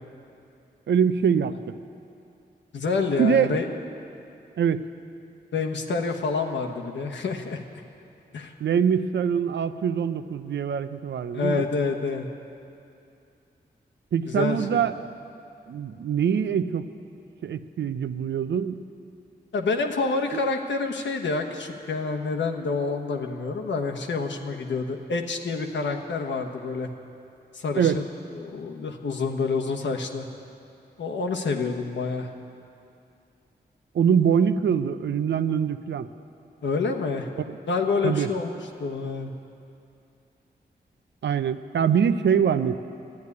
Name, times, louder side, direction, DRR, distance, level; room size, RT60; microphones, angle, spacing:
voice 1, 0.9-1.8 3.2-3.5 4.6-4.9 8.6-11.7 14.1-14.9 15.7-16.9 17.4-18.8 20.3-20.4 27.8-28.0 33.9-36.1 38.0-38.3 41.2-42.8, right 7 dB, 80° right, 11 dB, 0.6 m, -23 dB
voice 2, 2.7-3.7 5.5-7.6 8.3-8.5 11.3-12.3 14.3-14.6 19.5-26.9 27.5-28.0 28.4-30.3 31.0-32.3 36.6-37.3 37.7-39.3, left 4 dB, 85° left, 3 dB, 1.2 m, -27 dB
13.0 x 9.6 x 9.6 m, 2.7 s
cardioid pair, 50°, 18 cm